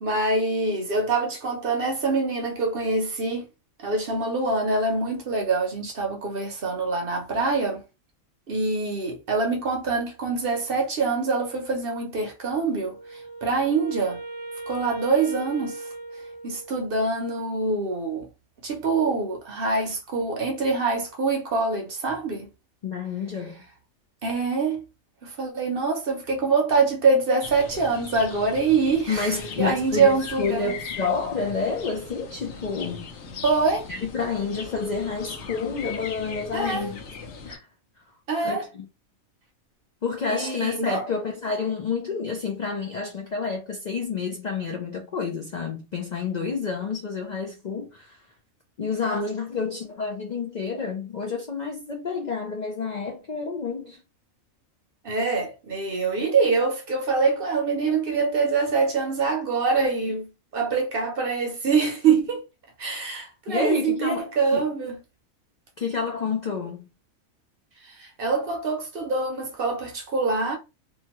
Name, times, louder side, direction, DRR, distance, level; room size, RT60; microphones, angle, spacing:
voice 1, 0.0-3.5 3.8-7.8 8.5-14.2 14.7-15.8 16.4-18.3 18.6-22.5 24.2-24.8 25.2-29.3 29.6-30.7 33.4-33.9 36.5-36.9 38.3-38.7 40.3-41.0 55.0-62.4 62.8-65.0 67.8-70.6, right 4 dB, 55° right, 0.7 m, -25 dB
Wind instrument woodwind instrument, 12.7-17.0, right 2 dB, 15° right, 0.5 m, -38 dB
voice 2, 22.8-23.6 29.1-33.1 33.9-37.0 37.4-37.7 38.4-38.8 40.0-48.2 48.8-54.0 63.5-64.6 65.8-66.9, left 5 dB, 90° left, 0.3 m, -29 dB
sound 1, 27.4-37.6, left 5 dB, 65° left, 0.8 m, -39 dB
2.8 x 2.2 x 2.8 m
omnidirectional pair, 1.4 m